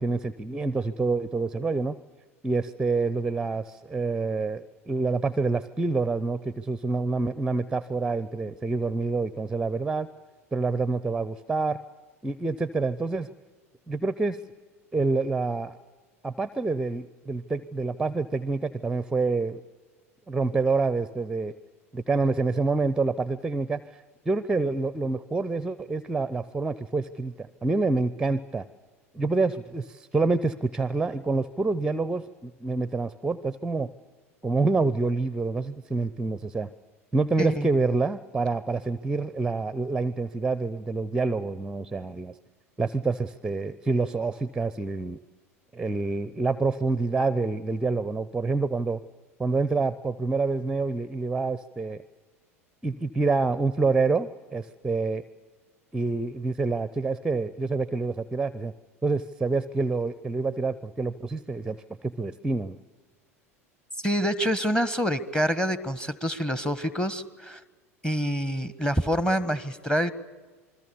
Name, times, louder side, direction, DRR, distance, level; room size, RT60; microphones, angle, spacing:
voice 1, 0.0-1.9 2.4-10.1 10.5-11.8 12.2-13.3 13.9-14.4 14.9-15.7 16.2-19.6 20.3-21.5 21.9-28.6 29.1-33.9 34.4-36.7 37.1-42.3 42.8-45.2 45.7-49.0 49.4-52.0 52.8-55.2 55.9-58.7 59.0-62.8, right 3 dB, 10° right, 16 dB, 0.7 m, -27 dB
voice 2, 64.0-67.6 68.0-70.1, equal, 10° left, 15 dB, 1.5 m, -26 dB
28.0 x 21.5 x 7.0 m, 1.4 s
figure-of-eight pair, 80°, 8 cm